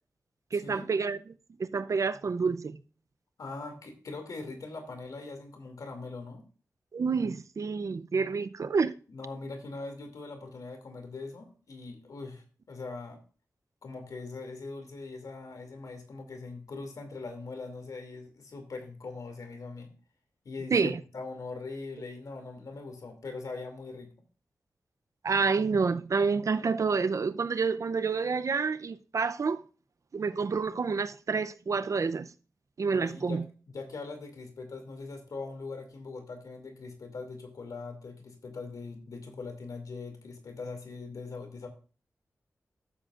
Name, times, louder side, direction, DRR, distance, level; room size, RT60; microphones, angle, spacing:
voice 1, 0.5-1.2 1.6-2.8 6.9-8.9 20.7-21.0 25.2-29.6 30.1-32.3 32.8-33.4, right 5 dB, 65° right, 0.6 m, -28 dB
voice 2, 3.4-6.4 9.1-13.2 13.8-19.9 20.4-24.1 32.9-41.7, left 3 dB, 80° left, 2.6 m, -41 dB
14.0 x 7.6 x 2.5 m
cardioid pair, 55°, 6 cm